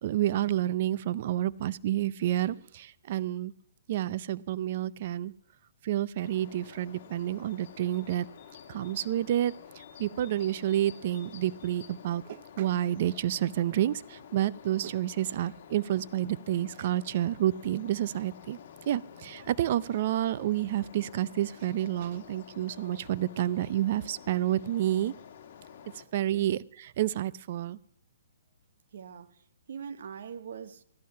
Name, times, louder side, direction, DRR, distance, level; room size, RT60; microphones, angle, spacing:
voice 1, 0.0-3.5 3.9-5.3 5.8-8.3 8.7-18.6 18.9-25.1 26.1-27.8, right 12 dB, 45° right, 0.5 m, -29 dB
sound 1, 6.2-26.0, left 8 dB, 50° left, 1.6 m, -50 dB
voice 2, 28.9-30.8, right 7 dB, 65° right, 0.9 m, -43 dB
13.5 x 11.5 x 5.7 m
hypercardioid pair, 155°, 0 cm